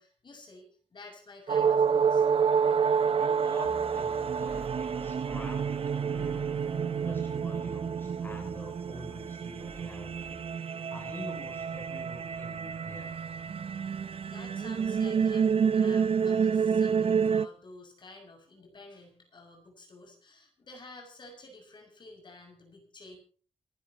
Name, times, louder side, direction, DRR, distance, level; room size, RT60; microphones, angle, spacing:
voice 1, 0.0-2.3 14.3-23.2, left 2 dB, 50° left, 3 dB, 6.6 m, -51 dB
sound 1, 1.5-17.5, right 6 dB, 65° right, 0.8 m, -28 dB
voice 2, 3.2-6.5 7.0-13.2, left 1 dB, 20° left, 2 dB, 3.8 m, -47 dB
sound 2, 3.6-10.6, right 2 dB, 20° right, 3.0 m, -46 dB
28.0 x 11.5 x 3.0 m, 0.40 s
wide cardioid pair, 140°, 10 cm